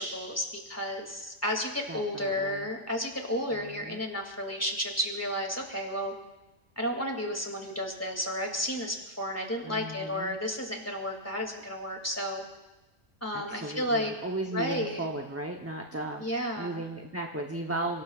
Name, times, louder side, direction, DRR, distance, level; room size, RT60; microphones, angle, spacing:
voice 1, 0.0-6.1 6.8-12.4 13.2-14.1 14.5-15.1 16.2-16.8, equal, 10° left, 2 dB, 2.4 m, -32 dB
voice 2, 1.9-2.7 3.5-4.0 9.6-10.4 13.3-18.0, right 2 dB, 15° right, 2 dB, 0.7 m, -36 dB
30.0 x 18.0 x 2.4 m, 1.0 s
omnidirectional pair, 1.2 m